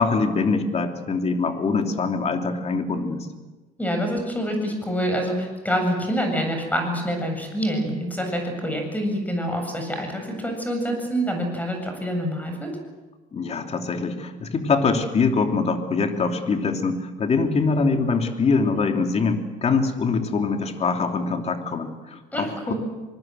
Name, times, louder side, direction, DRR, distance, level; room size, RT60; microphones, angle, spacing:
voice 1, 0.0-3.3 13.3-22.7, left 4 dB, 40° left, 4 dB, 3.0 m, -23 dB
voice 2, 3.8-12.7 22.3-22.7, equal, 10° left, 4 dB, 7.9 m, -26 dB
26.0 x 20.0 x 7.8 m, 1.2 s
cardioid pair, 110°, 17 cm